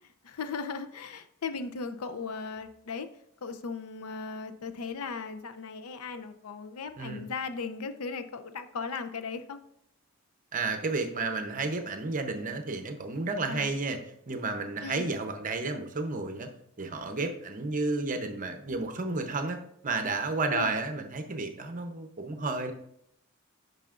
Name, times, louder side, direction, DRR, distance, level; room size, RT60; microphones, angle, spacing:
voice 1, 0.2-3.1 3.4-9.6 13.5-13.7 14.8-15.2 20.5-20.8, left 5 dB, 80° left, 9 dB, 0.5 m, -37 dB
voice 2, 10.5-14.0 14.3-16.5 16.8-22.7, right 3 dB, 35° right, 6 dB, 0.7 m, -32 dB
9.1 x 5.5 x 2.5 m, 0.73 s
head